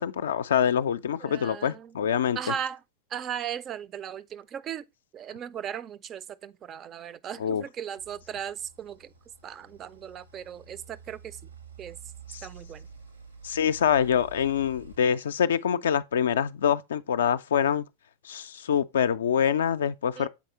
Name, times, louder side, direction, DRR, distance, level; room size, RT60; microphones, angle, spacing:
voice 1, 0.0-2.4 7.4-7.6 12.3-12.4 13.4-17.8 18.2-20.3, left 8 dB, 65° left, 0.3 m, -25 dB
voice 2, 1.2-1.9 2.4-2.8 3.1-4.8 5.1-9.1 9.4-11.4 11.8-12.0 12.4-12.9 20.2-20.3, right 9 dB, 30° right, 0.4 m, -37 dB
sound 1, 8.0-15.0, right 4 dB, 85° right, 1.3 m, -49 dB
7.2 x 4.7 x 2.8 m
figure-of-eight pair, 90°, 0 cm